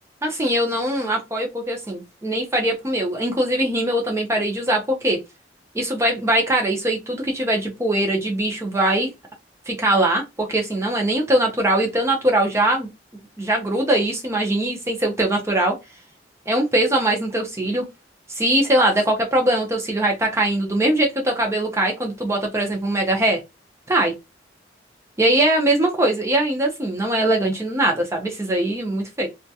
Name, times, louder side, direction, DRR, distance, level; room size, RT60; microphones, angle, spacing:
voice 1, 0.2-5.2 5.7-9.1 9.7-12.9 13.4-15.8 16.5-17.9 18.3-23.4 23.9-24.1 25.2-29.3, right 1 dB, 15° right, 0.5 m, -21 dB
2.3 x 2.1 x 2.6 m
head